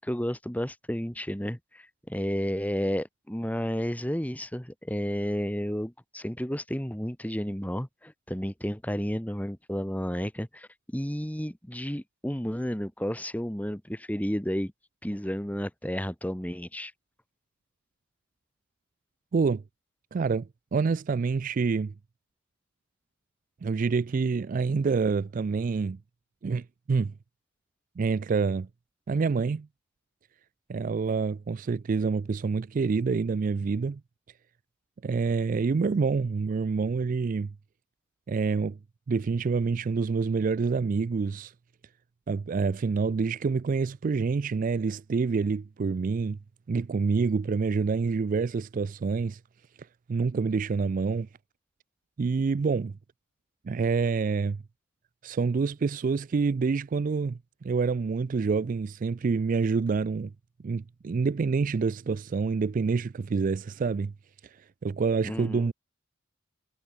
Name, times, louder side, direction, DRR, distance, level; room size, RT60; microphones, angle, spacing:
voice 1, 0.0-14.7 15.0-16.9 65.2-65.7, equal, 10° left, 2.1 m, -32 dB
voice 2, 19.3-19.6 20.1-21.9 23.6-26.0 26.4-27.1 28.0-28.7 29.1-29.7 30.7-34.0 35.0-37.5 38.3-38.8 39.1-41.5 42.3-46.4 46.7-49.4 50.1-51.3 52.2-52.9 53.6-54.6 55.2-60.3 60.6-64.1 64.8-65.7, right 4 dB, 40° right, 0.3 m, -27 dB
head